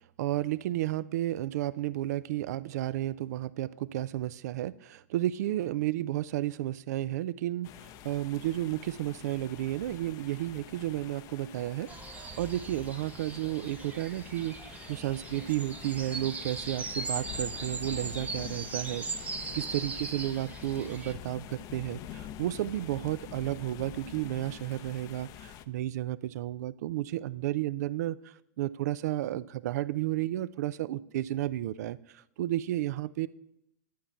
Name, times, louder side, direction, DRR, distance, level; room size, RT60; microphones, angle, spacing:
voice 1, 0.2-11.9 12.2-19.1 19.5-33.3, right 14 dB, 65° right, 18 dB, 0.4 m, -32 dB
sound 1, 7.6-25.6, left 11 dB, 40° left, 0.6 m, -47 dB
sound 2, 11.9-21.1, right 4 dB, 15° right, 0.7 m, -39 dB
11.5 x 7.0 x 4.4 m, 0.78 s
hypercardioid pair, 100°, 10 cm